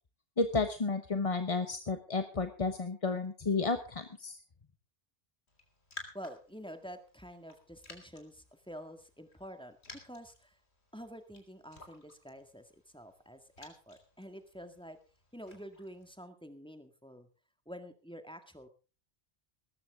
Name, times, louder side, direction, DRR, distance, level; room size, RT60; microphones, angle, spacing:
voice 1, 0.4-4.4, left 3 dB, 30° left, 9 dB, 1.0 m, -32 dB
Raindrop, 5.5-16.1, left 2 dB, 70° left, 3.5 m, -55 dB
voice 2, 6.1-10.6 10.9-15.0 15.3-17.3 17.6-18.7, equal, 5° left, 7 dB, 1.8 m, -48 dB
19.0 x 14.0 x 3.6 m, 0.34 s
omnidirectional pair, 1.1 m